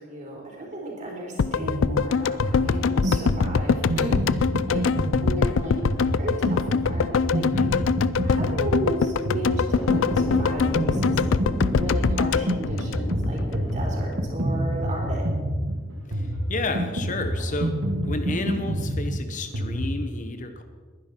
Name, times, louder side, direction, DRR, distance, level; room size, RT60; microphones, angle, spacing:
voice 1, 0.0-4.9 5.2-7.5 8.2-11.2 11.5-15.3, right 1 dB, 35° right, -2 dB, 4.2 m, -34 dB
sound 1, 1.4-13.6 13.9-14.0, left 5 dB, 65° left, 0.4 m, -24 dB
Drum kit, 1.6-19.8, right 1 dB, 70° right, 1.9 m, -28 dB
voice 2, 7.5-7.9 16.1-20.6, left 2 dB, 40° left, 7 dB, 0.9 m, -31 dB
sound 2, 9.8-14.9, equal, 5° left, 0.5 m, -34 dB
21.5 x 10.5 x 4.4 m, 1.5 s
head